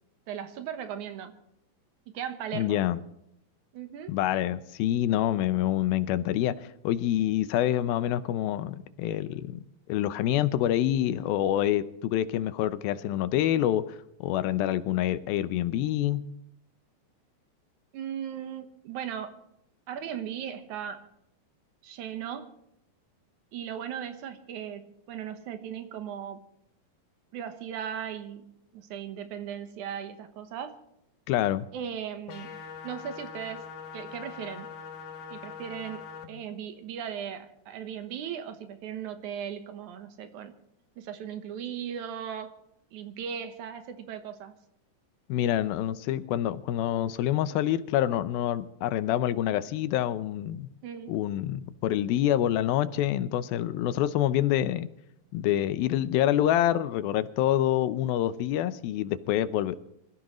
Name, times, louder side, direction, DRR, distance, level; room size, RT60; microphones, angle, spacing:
voice 1, 0.3-1.3 2.1-2.8 3.7-4.1 17.9-19.5 19.9-21.1 21.8-22.5 23.5-26.4 27.3-30.8 31.7-33.7 33.9-34.7 35.3-40.6 41.0-42.6 42.9-44.5 50.8-51.2, right 8 dB, 65° right, 8 dB, 2.3 m, -37 dB
voice 2, 2.5-3.0 4.1-6.5 6.8-9.6 9.9-14.0 14.2-16.2 31.3-31.7 45.3-50.7 51.1-54.9 55.3-59.8, left 12 dB, 90° left, 13 dB, 2.6 m, -26 dB
sound 1, 32.3-36.3, left 6 dB, 70° left, 2.6 m, -42 dB
25.5 x 15.0 x 3.1 m, 0.79 s
omnidirectional pair, 4.2 m